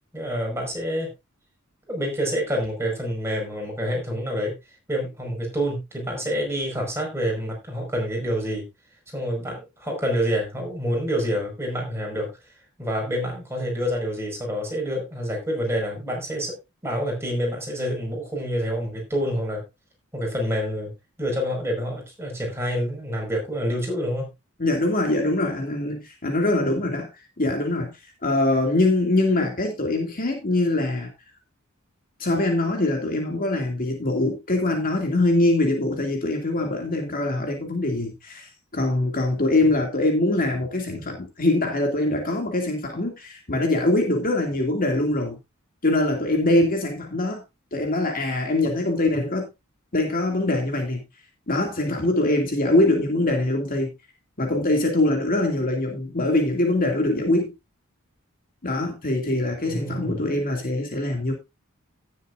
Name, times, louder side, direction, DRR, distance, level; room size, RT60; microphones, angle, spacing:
voice 1, 0.1-1.1 1.9-4.6 4.9-8.6 9.1-12.3 12.8-16.6 16.8-19.6 20.1-20.9 21.2-24.3 59.6-60.2, equal, 10° right, 5.4 m, -27 dB
voice 2, 24.6-27.1 27.4-27.9 28.2-31.1 32.2-45.4 45.8-47.4 47.7-49.5 49.9-51.0 51.5-53.9 54.4-57.5 58.6-61.3, left 2 dB, 40° left, 2.6 m, -23 dB
17.0 x 7.5 x 2.6 m
head